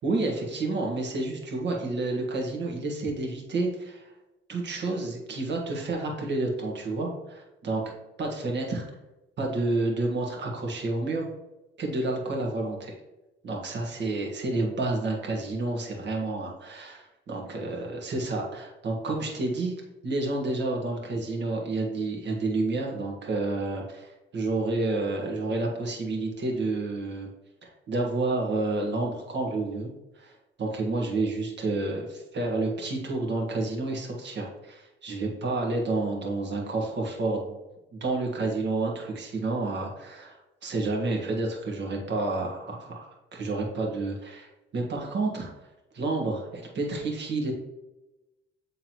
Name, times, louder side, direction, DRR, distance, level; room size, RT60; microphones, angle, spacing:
voice 1, 0.0-4.1 4.5-7.9 8.2-8.8 9.4-11.3 11.8-13.0 13.4-19.7 20.0-27.3 27.6-37.6 37.9-45.5 45.9-47.5, right 2 dB, 60° right, 0 dB, 1.7 m, -30 dB
9.0 x 3.7 x 3.0 m, 1.0 s
cardioid pair, 90°, 20 cm